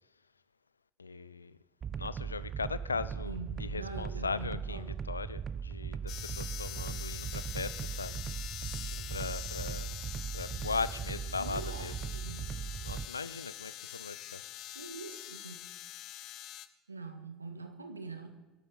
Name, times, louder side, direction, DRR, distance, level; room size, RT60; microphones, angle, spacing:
voice 1, 1.0-1.6 2.0-8.2 8.9-10.0 10.3-14.4, left 4 dB, 85° left, 0.6 m, -39 dB
sound 1, 1.8-13.1, right 7 dB, 35° right, 0.4 m, -39 dB
voice 2, 3.2-4.9 11.4-12.5 14.7-15.6 16.9-18.3, right 3 dB, 90° right, 1.6 m, -44 dB
sound 2, 6.1-16.7, left 13 dB, 50° left, 1.0 m, -44 dB
25.5 x 12.0 x 4.0 m
figure-of-eight pair, 70°, 0 cm